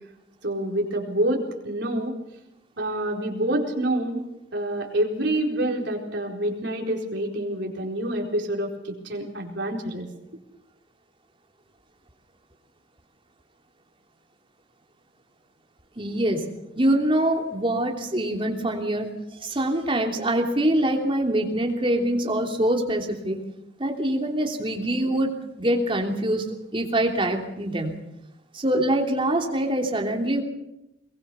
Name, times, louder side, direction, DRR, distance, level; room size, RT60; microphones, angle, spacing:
voice 1, 0.4-2.1 2.8-4.2 4.5-10.1, right 1 dB, 60° right, 1 dB, 4.4 m, -27 dB
voice 2, 16.0-16.4 16.8-19.1 19.4-23.4 23.8-28.0 28.5-30.4, right 1 dB, 25° right, 2 dB, 3.1 m, -24 dB
22.0 x 20.5 x 7.0 m, 0.90 s
head